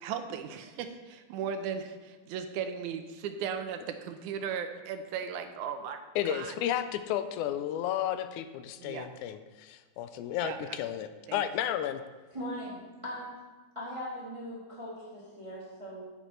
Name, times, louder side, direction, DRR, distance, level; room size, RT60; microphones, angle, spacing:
voice 1, 0.0-6.0 6.3-6.6 8.8-9.1 10.4-10.6 11.3-11.4, right 7 dB, 85° right, 7 dB, 2.1 m, -37 dB
voice 2, 6.2-12.0, left 10 dB, 80° left, 10 dB, 1.9 m, -32 dB
voice 3, 12.3-13.3 13.7-16.0, equal, 15° right, -6 dB, 1.4 m, -40 dB
9.3 x 8.9 x 3.2 m, 1.3 s
omnidirectional pair, 3.5 m